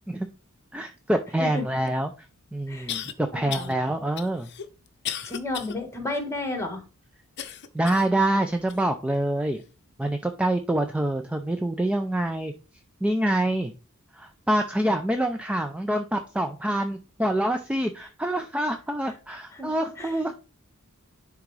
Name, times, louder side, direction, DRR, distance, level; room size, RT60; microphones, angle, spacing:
voice 1, 0.7-2.1 2.5-4.5 7.7-9.6 10.0-12.5 13.0-13.7 14.1-20.3, right 1 dB, 5° right, 6 dB, 0.4 m, -26 dB
sound 1, 1.9-2.0 2.9-3.1 3.5-3.7 4.2-5.8 6.2-6.3 7.4-8.1 8.7-8.8 9.6-9.7, left 9 dB, 55° left, 0.6 m, -35 dB
voice 2, 3.3-3.7 5.2-6.8 19.0-19.7 20.0-20.2, left 2 dB, 15° left, 5 dB, 1.4 m, -33 dB
10.5 x 3.5 x 3.2 m, 0.33 s
head